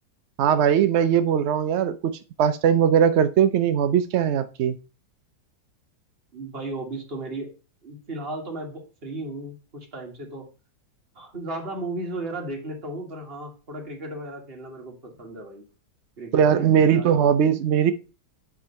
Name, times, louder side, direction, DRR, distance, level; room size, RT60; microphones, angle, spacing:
voice 1, 0.4-4.8 16.3-17.9, right 8 dB, 85° right, 11 dB, 0.6 m, -20 dB
voice 2, 6.3-7.5 7.8-10.5 11.2-15.6 16.2-17.4, right 2 dB, 35° right, 1 dB, 1.9 m, -35 dB
8.8 x 3.6 x 5.5 m, 0.34 s
omnidirectional pair, 1.8 m